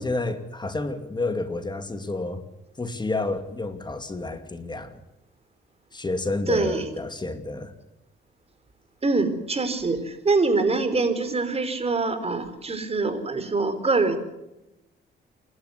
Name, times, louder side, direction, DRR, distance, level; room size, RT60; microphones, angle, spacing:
voice 1, 0.0-2.4 2.8-5.0 5.9-7.7, left 2 dB, 20° left, 8 dB, 2.7 m, -30 dB
voice 2, 6.5-6.9 9.0-14.2, right 3 dB, 30° right, 9 dB, 4.7 m, -24 dB
28.5 x 12.0 x 8.3 m, 0.93 s
cardioid pair, 90°, 20 cm